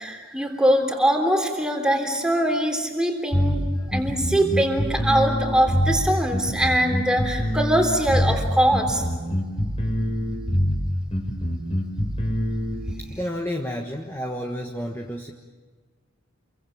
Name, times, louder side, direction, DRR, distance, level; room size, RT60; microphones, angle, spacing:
voice 1, 0.0-9.0, right 1 dB, 5° right, 3 dB, 3.4 m, -22 dB
sound 1, 3.3-12.9, equal, 30° left, 4.3 m, -25 dB
voice 2, 13.0-15.3, equal, 10° left, 2 dB, 1.3 m, -31 dB
28.0 x 23.5 x 7.4 m, 1.4 s
head